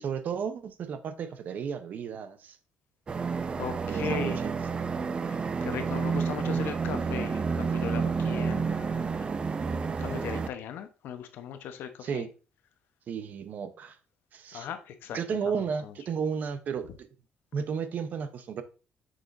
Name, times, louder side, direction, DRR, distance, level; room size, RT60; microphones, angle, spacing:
voice 1, 0.0-2.6 3.9-4.5 12.0-12.3 13.1-14.0 14.3-14.7 15.1-17.1 17.5-18.6, right 6 dB, 50° right, 11 dB, 0.8 m, -33 dB
sound 1, 3.1-10.5, right 5 dB, 30° right, 0.5 m, -30 dB
voice 2, 3.6-4.4 5.3-9.2 10.0-12.3 14.5-15.2 15.4-15.9, left 8 dB, 70° left, 8 dB, 0.9 m, -38 dB
6.5 x 6.2 x 2.6 m, 0.34 s
cardioid pair, 130°, 4 cm